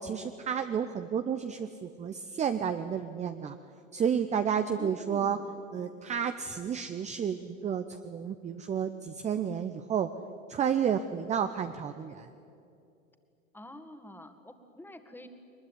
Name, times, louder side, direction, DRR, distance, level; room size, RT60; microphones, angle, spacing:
voice 1, 0.0-3.6 3.9-5.4 5.7-10.1 10.5-12.3, right 8 dB, 20° right, 9 dB, 0.8 m, -31 dB
voice 2, 4.8-5.4 13.5-15.3, left 1 dB, 5° left, 7 dB, 2.1 m, -46 dB
22.5 x 21.0 x 9.9 m, 2.6 s
figure-of-eight pair, 90°, 38 cm